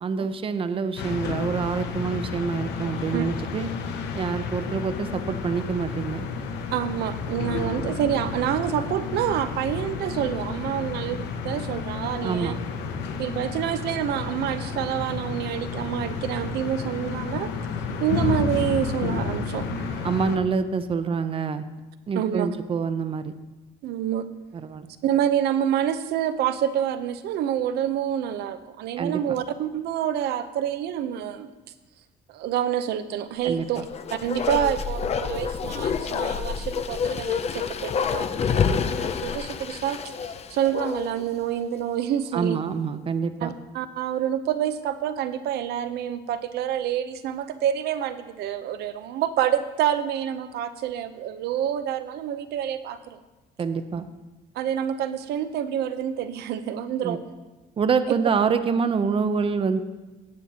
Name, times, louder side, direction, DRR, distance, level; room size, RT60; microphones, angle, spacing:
voice 1, 0.0-3.7 4.1-6.3 12.2-12.6 20.0-21.6 22.1-23.3 24.5-24.9 29.0-29.2 33.4-33.7 42.3-43.5 53.6-54.0 57.0-57.2 57.8-59.8, right 5 dB, 30° right, 10 dB, 0.7 m, -26 dB
sound 1, 1.0-20.4, left 5 dB, 80° left, 1.0 m, -31 dB
voice 2, 6.7-12.6 13.2-17.5 18.0-20.1 22.1-22.5 23.8-24.3 25.0-31.5 32.3-33.8 34.1-40.0 40.5-42.6 43.4-53.2 54.6-57.2 58.1-58.2, right 10 dB, 75° right, 11 dB, 0.8 m, -27 dB
Bark, 33.7-41.3 41.6-41.7, left 6 dB, 40° left, 0.6 m, -28 dB
17.0 x 7.9 x 2.9 m, 1.1 s
cardioid pair, 110°, 17 cm